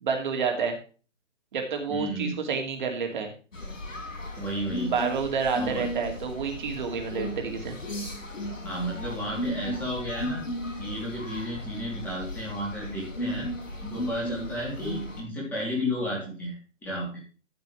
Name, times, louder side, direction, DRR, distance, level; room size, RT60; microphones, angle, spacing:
voice 1, 0.0-0.8 1.5-3.3 4.9-7.8, right 5 dB, 35° right, 3 dB, 2.6 m, -29 dB
voice 2, 1.9-2.4 4.3-4.9 5.6-5.8 8.6-10.4 10.8-13.5 13.8-17.1, equal, 5° left, -4 dB, 3.0 m, -33 dB
sound 1, 3.5-15.2, left 1 dB, 90° left, 5.2 m, -35 dB
13.0 x 7.3 x 3.2 m, 0.36 s
hypercardioid pair, 160°, 38 cm